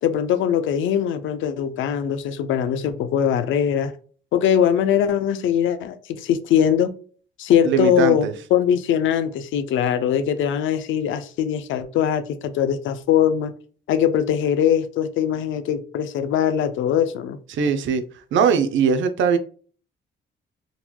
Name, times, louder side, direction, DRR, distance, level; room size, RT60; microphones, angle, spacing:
voice 1, 0.0-3.9 4.3-6.9 7.4-13.5 13.9-17.4, left 9 dB, 80° left, 0.5 m, -21 dB
voice 2, 7.6-8.3 17.5-18.0 18.3-19.4, right 6 dB, 70° right, 0.5 m, -20 dB
3.8 x 2.9 x 2.2 m
cardioid pair, 90°, 20 cm